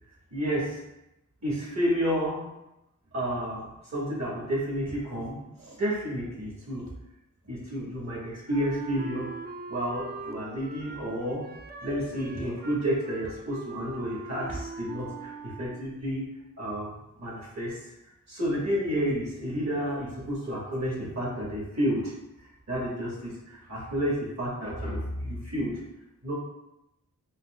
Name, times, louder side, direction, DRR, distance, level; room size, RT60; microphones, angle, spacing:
voice 1, 0.3-0.8 1.4-2.5 3.1-6.8 7.5-11.5 11.8-16.2 16.6-17.8 18.3-25.8 26.2-26.3, equal, 55° right, -5 dB, 1.4 m, -31 dB
Wind instrument woodwind instrument, 8.5-16.0, right 3 dB, 30° right, 0.4 m, -42 dB
5.4 x 2.0 x 2.2 m, 0.89 s
wide cardioid pair, 45°, 33 cm